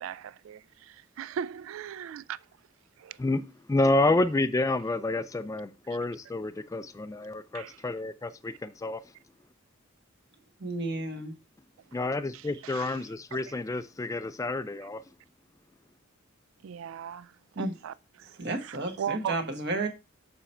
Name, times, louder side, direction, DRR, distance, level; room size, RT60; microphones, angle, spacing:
voice 1, 0.0-2.2 3.0-3.1 7.5-7.8 12.3-13.0 13.3-13.6 16.6-18.4 18.6-19.4, right 8 dB, 75° right, 0.3 m, -38 dB
voice 2, 3.7-9.0 11.9-15.0, left 2 dB, 15° left, 0.3 m, -29 dB
voice 3, 10.6-11.3 17.5-17.8 18.4-19.9, right 2 dB, 60° right, 1.4 m, -32 dB
7.0 x 4.4 x 4.3 m
head